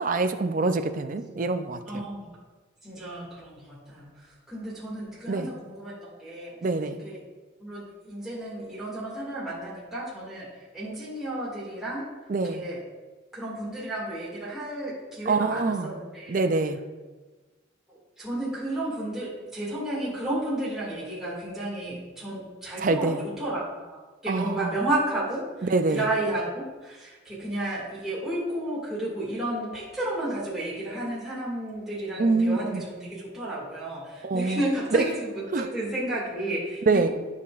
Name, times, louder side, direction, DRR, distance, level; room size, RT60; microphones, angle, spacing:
voice 1, 0.0-2.0 5.3-5.5 6.6-7.0 12.3-12.6 15.3-15.9 16.3-16.8 22.8-23.2 24.3-24.8 25.7-26.0 32.2-32.8 34.2-34.6 34.9-35.0 35.5-35.7 36.9-37.1, right 3 dB, 45° right, 8 dB, 0.4 m, -25 dB
voice 2, 1.9-2.3 2.8-6.6 7.0-7.2 7.6-12.1 12.4-12.8 13.3-16.4 17.9-24.0 24.2-37.1, right 1 dB, ahead, -9 dB, 2.1 m, -32 dB
14.5 x 5.7 x 2.5 m, 1.3 s
head